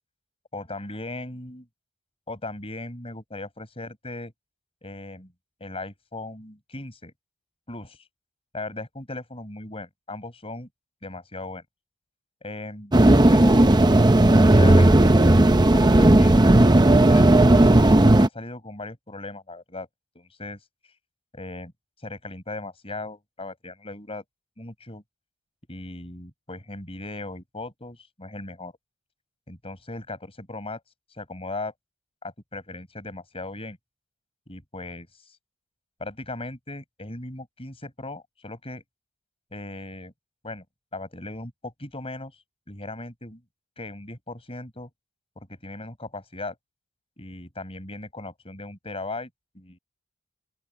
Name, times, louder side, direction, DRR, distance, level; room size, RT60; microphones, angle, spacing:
voice 1, 0.5-1.7 2.3-4.3 4.8-5.3 5.6-7.1 7.7-8.1 8.5-10.7 11.0-11.6 12.4-12.9 13.3-13.6 14.4-15.1 15.7-16.6 17.1-19.9 20.1-20.6 21.3-21.7 22.0-24.2 24.6-25.0 25.7-28.7 29.5-30.8 31.2-31.7 32.2-33.8 34.5-35.4 36.0-38.8 39.5-40.1 40.4-40.6 40.9-42.3 42.7-43.4 43.8-44.9 45.4-46.6 47.2-49.3 49.5-49.8, left 2 dB, 25° left, 5.9 m, -37 dB
sound 1, 12.9-18.3, right 1 dB, 20° right, 0.7 m, -15 dB
open air
head